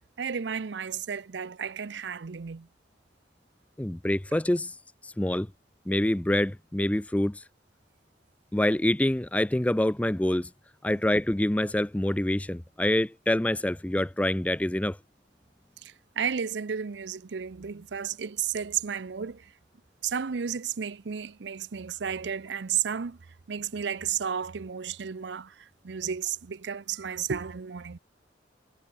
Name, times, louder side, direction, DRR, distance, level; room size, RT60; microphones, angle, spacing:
voice 1, 0.2-2.7 10.9-11.0 15.8-19.5 20.0-23.2 23.5-28.0, right 7 dB, 70° right, 0.6 m, -33 dB
voice 2, 3.8-4.7 5.2-5.5 5.9-7.4 8.5-10.5 10.8-15.0, left 1 dB, 10° left, 0.4 m, -26 dB
head